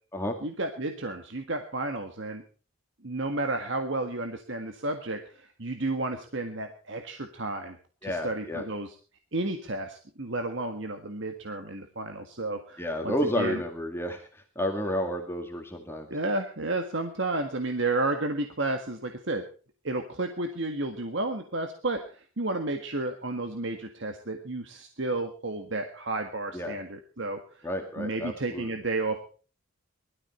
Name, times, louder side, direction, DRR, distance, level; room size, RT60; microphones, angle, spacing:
voice 1, 0.4-2.4 3.0-7.8 8.0-8.9 9.3-13.6 16.1-19.4 19.8-27.7 28.0-29.2, right 2 dB, 60° right, 5 dB, 1.7 m, -32 dB
voice 2, 8.0-8.6 12.8-16.1 26.5-26.8 27.6-28.7, left 1 dB, 10° left, 3 dB, 2.0 m, -31 dB
20.5 x 13.0 x 4.3 m, 0.39 s
head